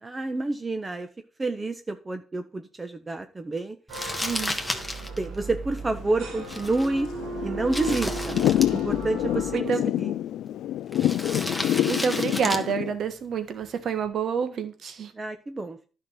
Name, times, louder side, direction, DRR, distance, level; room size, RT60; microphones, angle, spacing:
voice 1, 0.0-1.1 1.4-3.8 5.2-7.1 7.4-8.4 8.7-10.1 15.1-15.8, right 2 dB, 25° right, 1.1 m, -29 dB
Crumpling crinkling, 3.9-14.1, left 1 dB, 5° left, 1.8 m, -36 dB
sound 1, 3.9-9.6, right 4 dB, 80° right, 2.6 m, -36 dB
voice 2, 4.2-4.6 9.5-9.9 11.6-15.1, right 6 dB, 65° right, 1.6 m, -28 dB
Thunder / Rain, 5.9-12.9, left 12 dB, 80° left, 0.4 m, -27 dB
10.5 x 5.9 x 5.7 m
supercardioid pair, 65°, 0 cm